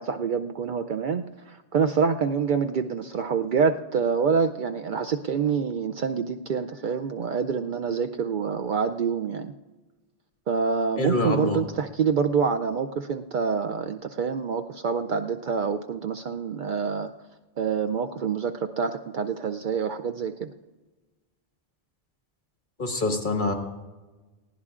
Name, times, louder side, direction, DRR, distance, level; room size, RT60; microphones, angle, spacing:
voice 1, 0.0-9.5 10.5-17.1 17.6-20.5, right 6 dB, 60° right, 8 dB, 0.6 m, -26 dB
voice 2, 11.0-11.6 22.8-23.5, left 2 dB, 50° left, 3 dB, 1.7 m, -25 dB
19.5 x 16.0 x 2.4 m, 1.2 s
omnidirectional pair, 1.0 m